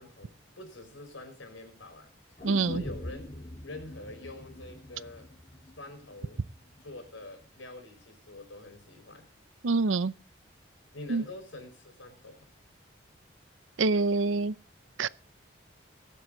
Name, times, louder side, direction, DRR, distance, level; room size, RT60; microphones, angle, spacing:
voice 1, 0.0-3.4 3.6-5.3 5.8-6.5 6.8-9.3 10.9-12.5, left 2 dB, 80° left, 5.1 m, -46 dB
sound 1, 2.4-6.4 6.7-6.8, left 1 dB, 40° left, 3.9 m, -43 dB
voice 2, 2.4-2.8 9.6-10.1 11.1-11.2 13.8-14.5 15.0-15.1, right 3 dB, 80° right, 0.6 m, -26 dB
23.0 x 7.8 x 3.9 m
head